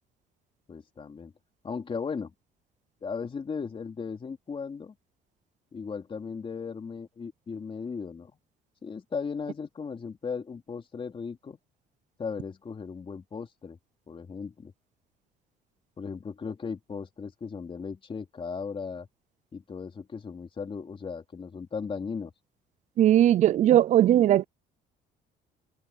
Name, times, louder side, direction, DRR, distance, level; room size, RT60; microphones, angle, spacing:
voice 1, 0.7-1.3 1.6-2.3 3.0-4.9 5.7-8.3 8.8-11.6 12.2-13.8 14.1-14.7 16.0-19.1 19.5-22.3, left 5 dB, 30° left, 3.7 m, -36 dB
voice 2, 23.0-24.5, right 12 dB, 45° right, 0.4 m, -19 dB
cardioid pair, 110°, 17 cm